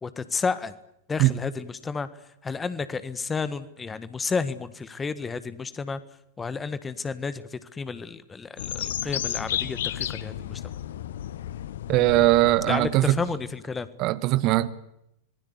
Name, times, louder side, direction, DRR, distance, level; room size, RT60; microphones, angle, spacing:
voice 1, 0.0-0.7 1.1-2.1 2.4-6.0 6.4-10.6 12.6-13.9, left 5 dB, 15° left, 1.6 m, -31 dB
sound 1, 8.6-13.5, left 11 dB, 60° left, 1.1 m, -33 dB
voice 2, 11.9-13.2 14.0-14.7, right 17 dB, 40° right, 1.2 m, -20 dB
25.5 x 20.5 x 8.4 m
figure-of-eight pair, 90°, 0 cm